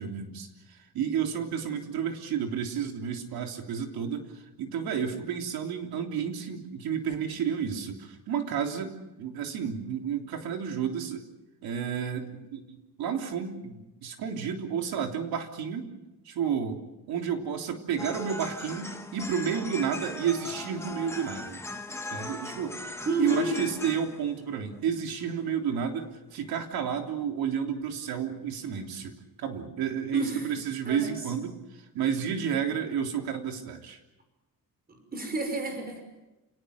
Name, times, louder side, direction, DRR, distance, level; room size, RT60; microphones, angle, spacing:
voice 1, 0.0-11.3 11.6-15.9 16.3-16.8 17.1-21.6 22.1-22.8 23.2-34.0, right 7 dB, 85° right, 4 dB, 3.4 m, -31 dB
sound 1, 18.0-24.5 24.8-24.9 25.2-25.6 26.0-26.1 26.4-26.5 26.8-26.9, left 2 dB, 5° left, 1.3 m, -39 dB
voice 2, 23.0-23.6 30.1-30.5 30.9-31.2 34.9-36.0, right 1 dB, 25° right, 5 dB, 5.7 m, -30 dB
29.5 x 19.0 x 8.1 m, 1.0 s
cardioid pair, 160°, 36 cm